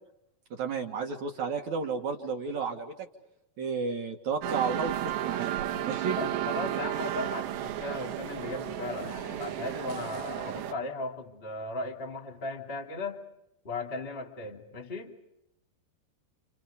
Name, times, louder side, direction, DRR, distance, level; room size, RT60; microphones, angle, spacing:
voice 1, 0.5-3.1 3.6-6.2, right 5 dB, 55° right, 3 dB, 2.6 m, -32 dB
sound 1, 4.4-10.7, right 12 dB, 85° right, 3.4 m, -33 dB
voice 2, 6.2-13.2 13.6-15.1, left 2 dB, 20° left, 4 dB, 1.8 m, -37 dB
29.0 x 29.0 x 5.2 m, 0.85 s
omnidirectional pair, 4.8 m